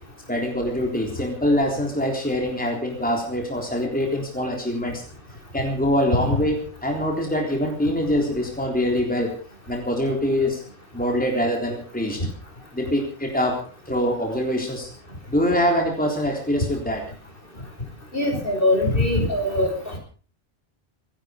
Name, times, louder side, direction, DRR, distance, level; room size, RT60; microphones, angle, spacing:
voice 1, 0.3-5.0 5.5-9.3 9.7-10.6 10.9-12.2 12.7-13.6 13.9-14.9 15.3-17.0, equal, 5° left, 1 dB, 3.7 m, -24 dB
voice 2, 18.1-19.7, left 1 dB, 45° left, 2 dB, 6.0 m, -21 dB
26.5 x 10.5 x 5.1 m, 0.40 s
omnidirectional pair, 1.2 m